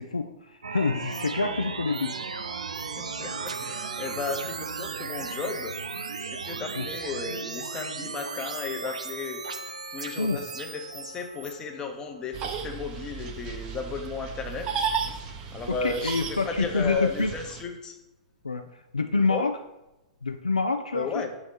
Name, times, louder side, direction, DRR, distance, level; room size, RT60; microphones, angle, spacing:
voice 1, 0.0-2.1 6.8-6.9 10.2-10.4 15.8-17.3 18.4-19.5 20.2-21.1, left 3 dB, 85° left, 6 dB, 0.3 m, -27 dB
sound 1, 0.6-11.5, right 5 dB, 70° right, 0.5 m, -36 dB
voice 2, 3.0-5.8 6.2-9.4 9.9-14.9 15.5-18.0 19.3-19.5 20.9-21.3, left 4 dB, 20° left, 4 dB, 0.8 m, -34 dB
sound 2, 9.4-16.3 16.6-16.7 17.2-17.3 17.8-17.9, left 1 dB, 90° right, 0.9 m, -50 dB
sound 3, 12.3-17.6, right 6 dB, 30° right, 0.6 m, -34 dB
6.3 x 3.1 x 5.3 m, 0.93 s
figure-of-eight pair, 110°, 4 cm